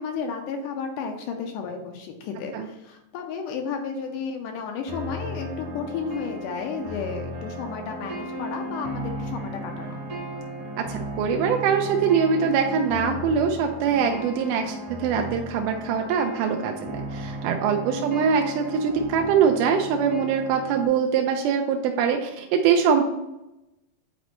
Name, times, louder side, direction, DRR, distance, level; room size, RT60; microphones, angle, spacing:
voice 1, 0.0-10.0 17.9-18.3, left 5 dB, 80° left, 4 dB, 2.1 m, -33 dB
sound 1, 4.9-20.9, right 1 dB, 40° right, 1.0 m, -35 dB
voice 2, 10.8-23.0, right 6 dB, 80° right, 4 dB, 1.9 m, -23 dB
9.3 x 4.1 x 3.0 m, 0.94 s
omnidirectional pair, 4.0 m